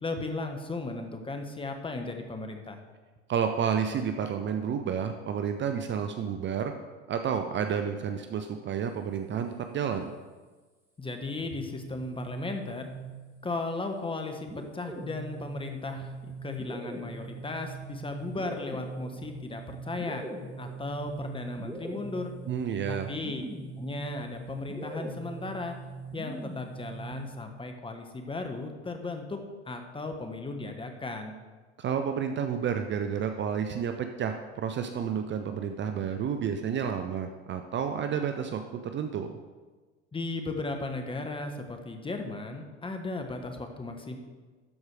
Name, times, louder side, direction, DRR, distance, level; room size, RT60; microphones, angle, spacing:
voice 1, 0.0-2.8 11.0-12.9 13.4-20.2 20.6-22.3 22.9-23.4 23.8-25.8 26.1-29.4 29.7-31.3 40.1-44.2, left 3 dB, 15° left, 5 dB, 1.2 m, -36 dB
voice 2, 3.3-6.7 7.1-10.1 22.5-23.1 31.8-39.3, right 7 dB, 30° right, 7 dB, 0.6 m, -30 dB
sound 1, 11.4-13.5 14.5-27.4, right 3 dB, 5° right, 1.8 m, -41 dB
12.5 x 4.8 x 4.8 m, 1.3 s
hypercardioid pair, 85°, 35 cm